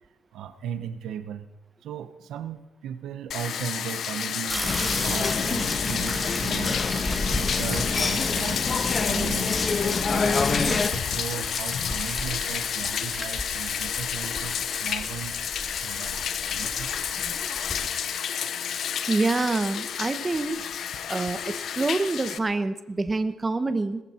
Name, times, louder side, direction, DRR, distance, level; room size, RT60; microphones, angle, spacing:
voice 1, 0.3-1.5 1.8-6.8 7.2-9.7 10.1-15.4 15.8-17.0, right 8 dB, 80° right, 10 dB, 1.2 m, -37 dB
Bathtub (filling or washing), 3.3-22.4, left 8 dB, 65° left, 1.0 m, -31 dB
sound 1, 4.5-17.9, left 1 dB, 10° left, 2.8 m, -35 dB
sound 2, 4.6-10.9, left 4 dB, 35° left, 1.5 m, -27 dB
voice 2, 19.1-20.7 21.1-24.0, right 3 dB, 25° right, 10 dB, 1.1 m, -26 dB
19.5 x 15.0 x 4.5 m, 1.0 s
cardioid pair, 90°, 0 cm